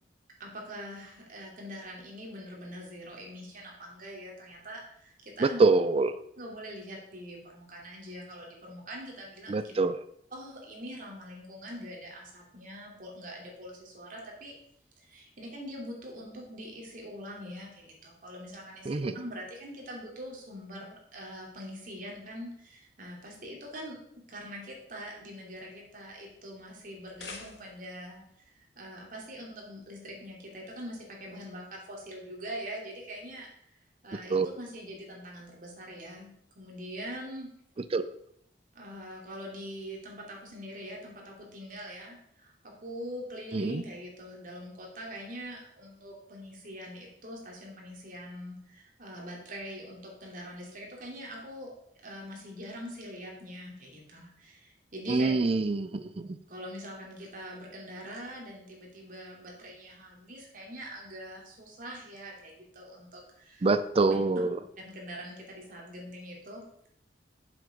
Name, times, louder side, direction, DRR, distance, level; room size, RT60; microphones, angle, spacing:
voice 1, 0.4-5.6 6.4-9.7 10.3-14.5 15.0-33.5 34.0-36.3 36.5-37.5 38.7-51.7 52.0-55.3 56.5-63.7 64.1-64.2 64.8-66.6, equal, 50° right, -2 dB, 2.9 m, -43 dB
voice 2, 5.4-6.2 9.5-10.0 18.9-19.2 34.3-34.5 37.9-38.1 43.5-43.8 55.1-56.4 63.6-64.6, right 3 dB, 35° right, 12 dB, 0.4 m, -25 dB
sound 1, 26.9-28.0, left 4 dB, 75° left, 1.7 m, -46 dB
7.6 x 7.6 x 5.1 m, 0.71 s
head